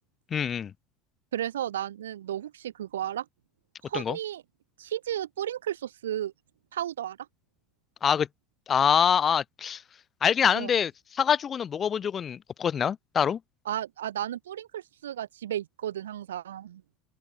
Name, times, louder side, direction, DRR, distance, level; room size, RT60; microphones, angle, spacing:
voice 1, 0.3-0.7 3.9-4.2 8.0-8.3 8.7-9.8 10.2-13.4, left 8 dB, 35° left, 0.6 m, -25 dB
voice 2, 1.3-3.3 3.9-4.4 4.8-6.3 6.7-7.2 10.5-10.7 13.7-16.8, right 11 dB, 90° right, 0.8 m, -33 dB
open air
hypercardioid pair, 85°, 0 cm